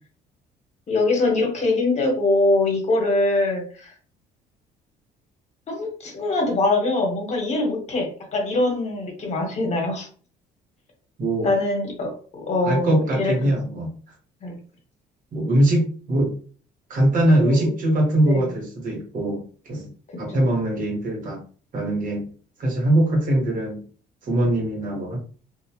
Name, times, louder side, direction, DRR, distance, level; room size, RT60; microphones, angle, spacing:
voice 1, 0.9-3.9 5.7-10.1 11.4-12.1 12.5-13.5 14.4-14.6 17.5-17.7 18.2-18.5 20.3-20.6, left 2 dB, 40° left, 2 dB, 1.2 m, -23 dB
voice 2, 11.2-11.5 12.6-13.9 15.3-16.3 16.9-19.9 20.2-21.4 21.7-22.3 22.6-23.9 24.2-25.2, right 1 dB, 55° right, -1 dB, 1.5 m, -22 dB
2.7 x 2.3 x 2.9 m, 0.40 s
cardioid pair, 110°, 17 cm